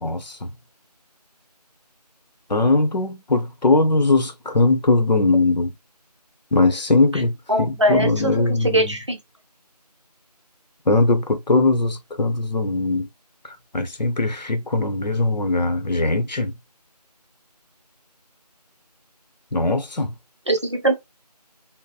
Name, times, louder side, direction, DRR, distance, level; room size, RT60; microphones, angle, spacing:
voice 1, 0.0-0.5 2.5-5.7 6.5-7.3 7.6-8.9 10.9-13.1 13.7-16.5 19.5-20.1, left 2 dB, 90° left, 0.8 m, -20 dB
voice 2, 7.5-8.4 8.7-9.2 20.5-20.9, right 1 dB, 45° right, 0.6 m, -21 dB
2.7 x 2.1 x 2.3 m
figure-of-eight pair, 175°, 21 cm